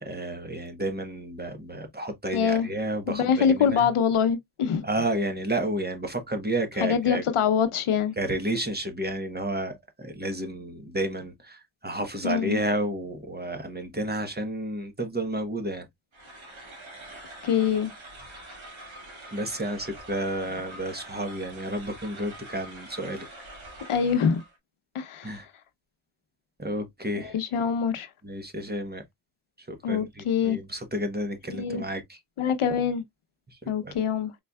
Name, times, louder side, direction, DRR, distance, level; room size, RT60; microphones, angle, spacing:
voice 1, 0.0-3.9 4.8-7.2 8.2-15.9 19.3-23.3 25.2-25.4 26.6-27.3 28.2-29.0 29.7-32.2 33.6-34.0, right 1 dB, 20° right, 1.1 m, -31 dB
voice 2, 2.3-2.7 3.1-4.9 6.8-8.1 12.2-12.6 17.4-17.9 23.9-24.4 24.9-25.3 27.2-28.1 29.8-30.6 31.5-31.8 32.4-33.0 33.7-34.3, left 7 dB, 80° left, 0.8 m, -24 dB
sound 1, 16.1-24.6, right 1 dB, 65° right, 1.9 m, -45 dB
4.3 x 4.0 x 2.3 m
wide cardioid pair, 110°, 50 cm